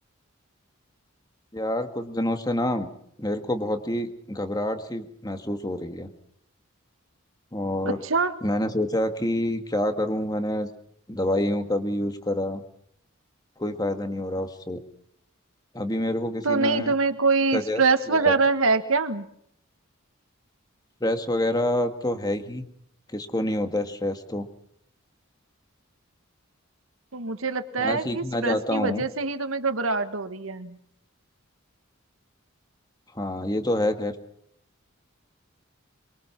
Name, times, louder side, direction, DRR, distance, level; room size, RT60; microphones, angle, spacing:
voice 1, 1.5-2.9 3.2-6.1 7.5-8.0 8.4-10.7 11.1-12.6 13.6-14.8 15.7-16.9 17.5-17.8 18.1-18.4 21.0-22.7 23.1-24.5 27.8-29.0 33.2-34.1, left 1 dB, 20° left, 7 dB, 1.9 m, -27 dB
voice 2, 7.8-8.3 16.4-19.3 27.1-30.8, right 4 dB, 80° right, 8 dB, 1.6 m, -24 dB
23.5 x 23.0 x 6.0 m, 0.67 s
head